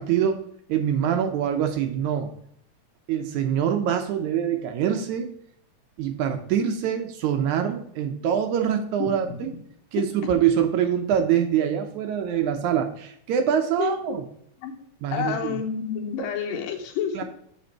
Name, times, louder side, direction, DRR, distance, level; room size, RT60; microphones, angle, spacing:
voice 1, 0.0-2.3 3.1-5.3 6.0-9.5 9.9-14.2 15.0-15.6 17.1-17.2, right 9 dB, 75° right, 6 dB, 1.8 m, -24 dB
voice 2, 9.0-9.5 13.8-14.2 14.6-14.7 15.1-17.2, left 7 dB, 85° left, 3 dB, 2.7 m, -29 dB
6.7 x 5.2 x 4.4 m, 0.70 s
omnidirectional pair, 3.9 m